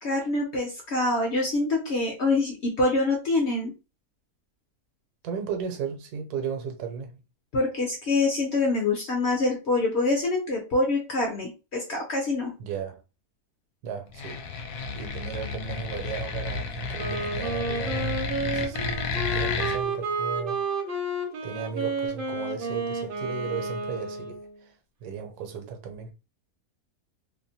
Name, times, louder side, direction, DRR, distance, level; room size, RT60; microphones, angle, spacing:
voice 1, 0.0-3.7 7.5-12.5, left 2 dB, 60° left, 0.7 m, -25 dB
voice 2, 5.2-7.2 12.6-13.0 13.8-14.7 14.9-20.9 21.4-24.7 25.0-26.1, right 6 dB, 75° right, 1.1 m, -35 dB
sound 1, 14.1-19.8, left 4 dB, 75° left, 1.1 m, -32 dB
Wind instrument woodwind instrument, 16.9-24.6, right 2 dB, 55° right, 0.6 m, -31 dB
2.8 x 2.1 x 2.7 m
omnidirectional pair, 1.7 m